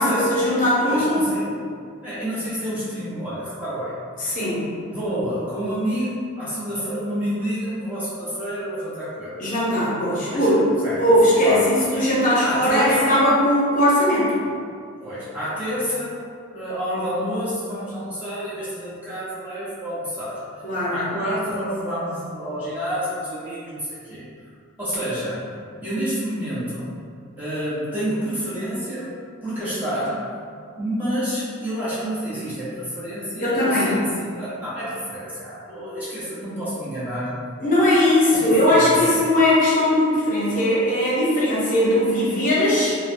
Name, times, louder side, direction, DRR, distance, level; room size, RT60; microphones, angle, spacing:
voice 1, 0.0-1.2 4.2-4.7 9.4-10.6 11.0-14.3 20.6-21.0 33.4-34.0 37.6-43.0, left 1 dB, 40° left, -7 dB, 0.7 m, -19 dB
voice 2, 0.8-1.5 2.0-4.0 4.9-9.4 10.1-10.5 10.8-11.0 11.4-11.7 12.4-13.2 15.0-16.2 16.5-20.4 20.9-24.3 24.8-25.5 25.8-26.9 27.4-29.1 29.4-30.3 30.8-37.4 38.3-39.2, equal, 10° right, -13 dB, 0.8 m, -28 dB
3.0 x 2.1 x 2.6 m, 2.2 s
head